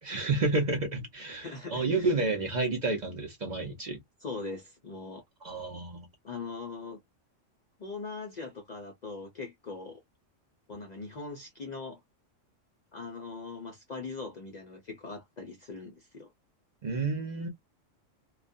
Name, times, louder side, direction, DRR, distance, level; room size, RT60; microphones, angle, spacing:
voice 1, 0.0-4.0 5.4-6.1 16.8-17.5, right 3 dB, 45° right, 0.7 m, -30 dB
voice 2, 1.4-2.1 4.2-5.2 6.2-7.0 7.8-10.0 10.7-12.0 12.9-16.3, left 4 dB, 50° left, 0.5 m, -41 dB
2.4 x 2.1 x 2.5 m
omnidirectional pair, 1.3 m